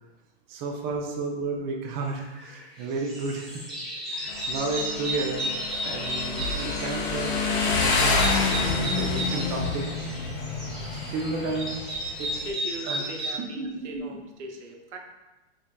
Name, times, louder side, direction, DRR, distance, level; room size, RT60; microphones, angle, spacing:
voice 1, 0.5-3.7 3.9-7.3 7.6-8.6 8.9-9.8 11.1-11.8 12.2-12.3 12.8-14.2, right 3 dB, 30° right, 1 dB, 0.5 m, -32 dB
sound 1, 2.2-2.6 3.0-13.3, equal, ahead, 1.1 m, -34 dB
Motorcycle, 4.3-12.5, left 3 dB, 30° left, 0.5 m, -28 dB
voice 2, 12.5-15.0, right 2 dB, 80° right, 2 dB, 0.7 m, -39 dB
4.0 x 3.4 x 2.2 m, 1.1 s
hypercardioid pair, 120°, 34 cm